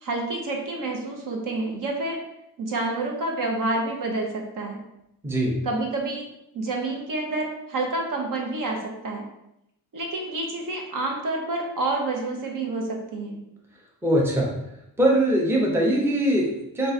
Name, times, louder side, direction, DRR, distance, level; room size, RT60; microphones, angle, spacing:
voice 1, 0.0-2.2 2.6-4.8 5.6-6.3 6.5-9.2 9.9-13.4, right 2 dB, 55° right, 0 dB, 0.8 m, -28 dB
voice 2, 5.2-5.6 14.0-14.5 15.0-16.9, right 1 dB, 5° right, -3 dB, 0.7 m, -22 dB
3.8 x 2.4 x 4.1 m, 0.83 s
wide cardioid pair, 135°, 37 cm